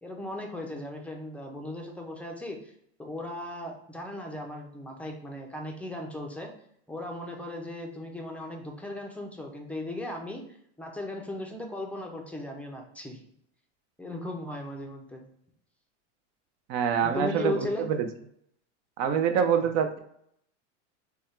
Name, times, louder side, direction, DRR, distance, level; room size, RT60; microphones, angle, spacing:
voice 1, 0.0-2.7 3.0-6.5 6.9-10.4 10.8-13.2 14.0-15.3 17.0-17.9 19.6-19.7, left 1 dB, 5° left, 1 dB, 0.5 m, -37 dB
voice 2, 16.7-18.1 19.0-20.0, right 7 dB, 50° right, 8 dB, 0.6 m, -25 dB
3.5 x 2.3 x 4.1 m, 0.70 s
supercardioid pair, 125°, 36 cm